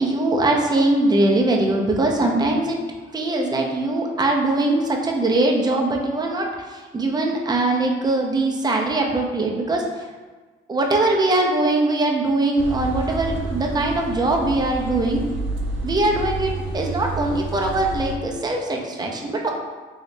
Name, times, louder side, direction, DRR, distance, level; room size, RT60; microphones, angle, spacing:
voice 1, 0.0-2.8 3.1-10.1 10.7-15.2 15.8-19.5, right 2 dB, 20° right, 0 dB, 0.5 m, -21 dB
sound 1, 12.6-18.2, right 2 dB, 75° right, 0.5 m, -29 dB
2.9 x 2.8 x 3.2 m, 1.4 s
cardioid pair, 90°, 20 cm